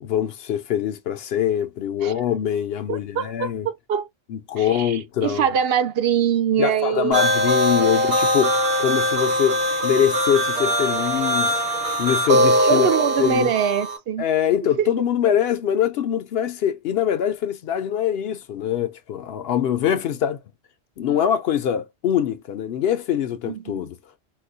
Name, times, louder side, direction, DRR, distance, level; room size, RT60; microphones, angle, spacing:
voice 1, 0.0-3.7 4.3-5.5 6.6-11.6 12.0-12.9 13.2-13.5 14.2-20.4 21.0-24.0, left 9 dB, 70° left, 0.8 m, -23 dB
voice 2, 2.9-4.1 4.6-7.3 12.7-14.3 15.3-15.4 23.4-23.8, right 8 dB, 65° right, 0.7 m, -23 dB
sound 1, 7.1-14.0, equal, 45° right, 1.2 m, -21 dB
4.7 x 2.2 x 2.6 m
omnidirectional pair, 1.1 m